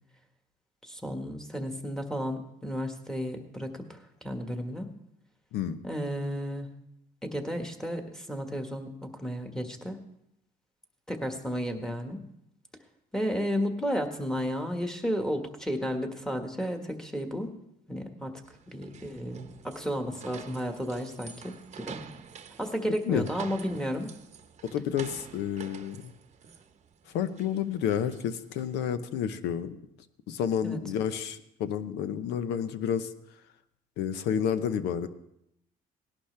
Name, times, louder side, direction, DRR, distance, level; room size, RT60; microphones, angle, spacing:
voice 1, 0.8-4.0 4.2-4.9 5.8-6.7 7.2-10.0 11.1-12.2 13.1-17.5 17.9-18.3 18.7-22.0 22.6-24.1 30.6-30.8, equal, 5° left, 4 dB, 1.6 m, -33 dB
sound 1, 18.4-28.9, right 7 dB, 40° right, 0.9 m, -48 dB
voice 2, 24.6-26.1 27.1-29.8 30.3-33.1 34.0-35.1, left 8 dB, 85° left, 12 dB, 0.8 m, -30 dB
18.0 x 11.5 x 3.4 m, 0.78 s
cardioid pair, 110°, 17 cm